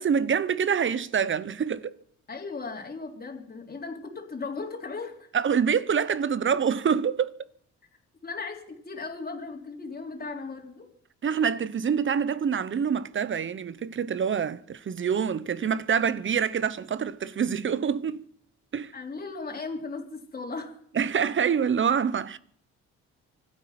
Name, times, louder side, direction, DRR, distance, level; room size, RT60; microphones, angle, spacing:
voice 1, 0.0-1.9 5.3-7.3 11.2-18.2 18.7-18.9 20.9-22.4, right 7 dB, 40° right, 0.9 m, -26 dB
voice 2, 2.3-5.3 8.2-10.9 18.9-20.8, left 4 dB, 30° left, 3.6 m, -37 dB
25.0 x 8.7 x 5.9 m
cardioid pair, 90°, 30 cm